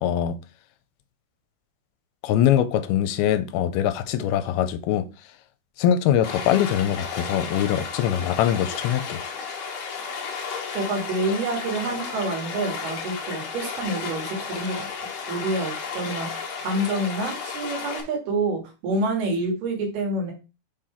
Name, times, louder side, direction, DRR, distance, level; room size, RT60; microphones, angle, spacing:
voice 1, 0.0-0.4 2.2-5.1 5.8-9.2, left 10 dB, 85° left, 2.5 m, -22 dB
Stream, 6.2-18.0, left 5 dB, 60° left, 1.8 m, -33 dB
voice 2, 10.8-14.9 15.3-16.3 16.6-20.3, right 2 dB, 80° right, 3.8 m, -27 dB
6.9 x 3.8 x 4.4 m
omnidirectional pair, 4.5 m